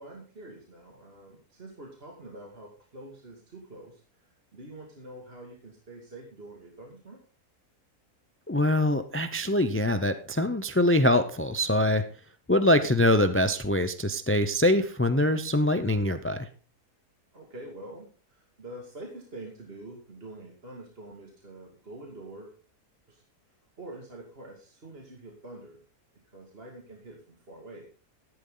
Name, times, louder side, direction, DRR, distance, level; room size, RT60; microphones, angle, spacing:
voice 1, 0.0-7.2 17.3-22.6 23.1-23.2 23.8-25.8 26.3-27.9, right 1 dB, 40° right, 0 dB, 2.6 m, -46 dB
voice 2, 8.5-12.1 12.5-16.5, left 1 dB, 20° left, 11 dB, 0.3 m, -24 dB
14.0 x 11.5 x 4.0 m, 0.36 s
omnidirectional pair, 1.7 m